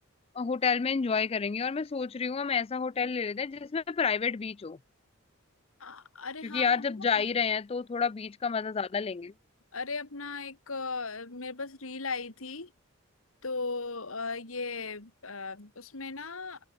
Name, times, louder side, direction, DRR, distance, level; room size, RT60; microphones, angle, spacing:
voice 1, 0.4-4.8 6.4-9.3, left 5 dB, 25° left, 0.3 m, -29 dB
voice 2, 5.8-7.2 9.7-12.7 13.4-16.7, left 4 dB, 80° left, 2.4 m, -37 dB
open air
head